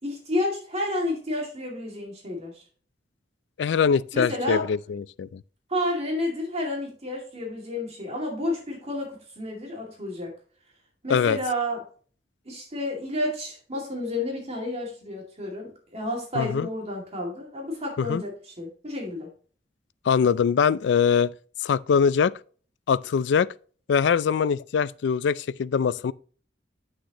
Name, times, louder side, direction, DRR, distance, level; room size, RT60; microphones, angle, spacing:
voice 1, 0.0-2.6 4.1-4.7 5.7-10.3 11.0-11.8 12.4-19.3, left 1 dB, 35° right, 2.3 m, -30 dB
voice 2, 3.6-5.4 11.1-11.4 16.4-16.7 18.0-18.2 20.1-21.3 21.6-22.3 22.9-23.5 23.9-26.1, left 6 dB, 70° left, 0.3 m, -22 dB
9.6 x 6.5 x 3.0 m
head